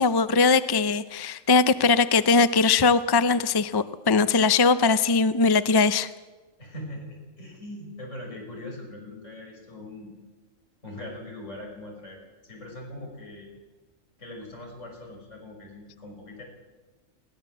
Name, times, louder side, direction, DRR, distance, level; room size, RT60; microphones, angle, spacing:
voice 1, 0.0-6.1, left 4 dB, 30° left, 13 dB, 0.4 m, -21 dB
voice 2, 6.6-10.1 10.8-13.5 14.2-16.4, left 1 dB, 65° left, 0 dB, 6.3 m, -41 dB
20.5 x 17.0 x 7.5 m, 1.2 s
omnidirectional pair, 1.4 m